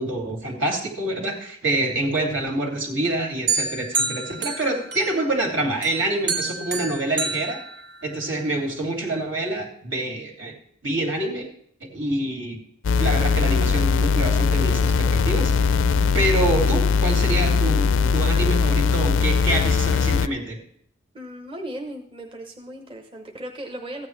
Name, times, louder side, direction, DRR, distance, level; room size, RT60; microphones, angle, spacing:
voice 1, 0.0-7.6 8.0-10.5 10.8-11.5 11.8-12.6 12.9-20.6, right 2 dB, 75° right, 1 dB, 2.8 m, -26 dB
sound 1, 3.5-5.4 5.8-8.4, right 4 dB, 60° right, 2.1 m, -29 dB
sound 2, 12.8-20.3, left 5 dB, 75° left, 0.4 m, -20 dB
voice 2, 21.1-24.1, right 1 dB, 25° right, 2 dB, 0.9 m, -36 dB
14.5 x 9.3 x 3.3 m, 0.65 s
head